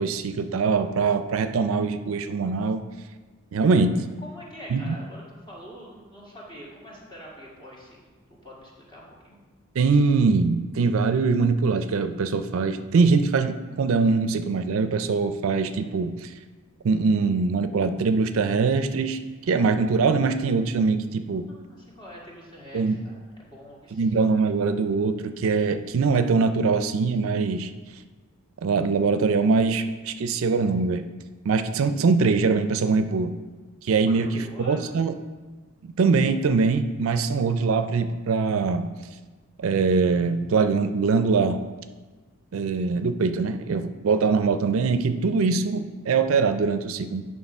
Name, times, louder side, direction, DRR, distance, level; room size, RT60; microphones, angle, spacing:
voice 1, 0.0-2.8 3.5-4.0 4.7-4.9 9.8-16.3 16.8-19.2 19.5-21.5 22.7-23.0 23.9-27.7 28.6-31.0 31.5-33.3 33.8-35.1 36.0-38.9 39.6-41.6 42.5-47.2, right 4 dB, 70° right, 10 dB, 0.4 m, -22 dB
voice 2, 4.2-8.2 8.4-9.4 21.5-23.1 23.4-24.1 34.0-34.9, equal, 20° left, -5 dB, 1.8 m, -44 dB
9.6 x 3.7 x 5.4 m, 1.3 s
head